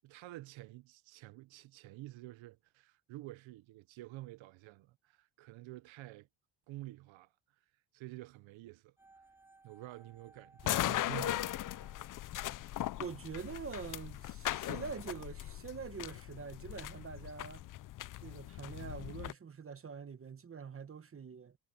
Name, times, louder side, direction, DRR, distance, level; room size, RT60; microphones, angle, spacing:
voice 1, 0.0-6.3 6.7-7.3 7.9-8.9 9.6-12.0, right 17 dB, 70° right, 0.8 m, -49 dB
sound 1, 9.0-13.1 13.3-13.4, right 3 dB, 5° right, 3.2 m, -62 dB
sound 2, 10.6-19.3, left 14 dB, 45° left, 0.5 m, -39 dB
voice 2, 13.0-17.6 18.2-21.6, right 6 dB, 25° right, 1.2 m, -45 dB
cardioid pair, 130°, 49 cm